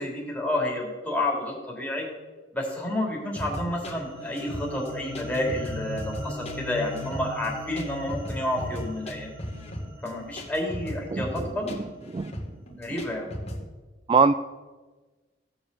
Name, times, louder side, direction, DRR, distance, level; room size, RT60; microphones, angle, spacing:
voice 1, 0.0-2.1 2.5-9.3 10.0-11.7 12.8-13.3, left 1 dB, 10° left, -1 dB, 3.2 m, -30 dB
sound 1, 3.4-13.6, equal, 35° left, 1.9 m, -37 dB
sound 2, 3.6-11.9, left 1 dB, 10° right, 3.0 m, -40 dB
voice 2, 11.1-11.3 11.7-11.8 12.1-12.3 14.1-14.3, right 5 dB, 30° right, 13 dB, 0.3 m, -21 dB
16.0 x 7.3 x 6.9 m, 1.3 s
head